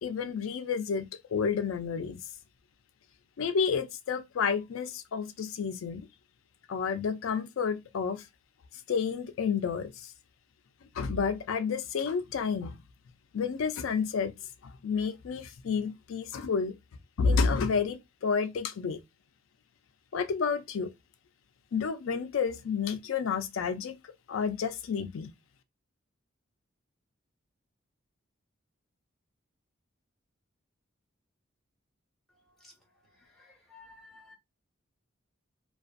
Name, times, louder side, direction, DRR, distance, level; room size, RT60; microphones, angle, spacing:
voice 1, 0.0-1.0 1.3-2.2 3.4-6.0 6.7-8.2 8.9-9.9 11.0-12.8 13.3-14.3 14.8-16.7 17.2-19.0 20.1-20.9 21.7-24.0 24.3-25.3, left 5 dB, 85° left, 0.4 m, -30 dB
voice 2, 33.4-34.3, left 3 dB, ahead, 0.8 m, -54 dB
2.5 x 2.3 x 2.4 m
head